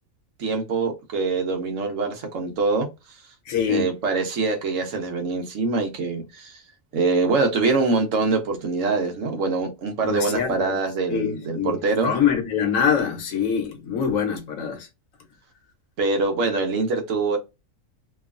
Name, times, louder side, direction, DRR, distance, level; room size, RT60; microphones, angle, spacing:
voice 1, 0.4-2.9 3.7-6.6 6.9-12.1 16.0-17.4, right 3 dB, 75° right, 1.1 m, -24 dB
voice 2, 3.5-3.9 10.0-10.7 11.1-11.8 12.0-14.9, left 7 dB, 85° left, 1.2 m, -24 dB
2.9 x 2.3 x 2.4 m
omnidirectional pair, 1.4 m